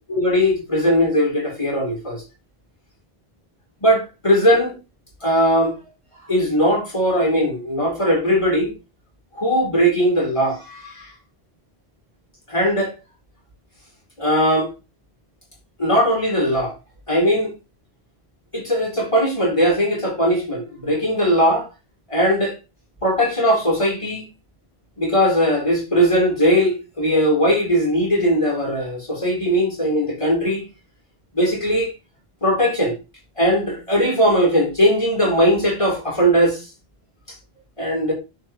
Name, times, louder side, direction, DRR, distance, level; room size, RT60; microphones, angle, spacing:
voice 1, 0.1-2.2 3.8-4.8 5.2-5.7 6.3-8.7 9.4-10.9 12.5-12.9 14.2-14.7 15.8-16.7 17.1-17.5 18.5-21.7 22.1-22.5 23.0-24.2 25.0-30.6 31.3-31.9 32.4-33.0 33.4-36.6 37.8-38.1, equal, 30° left, 3.7 m, -19 dB
10.5 x 5.7 x 3.0 m
omnidirectional pair, 1.0 m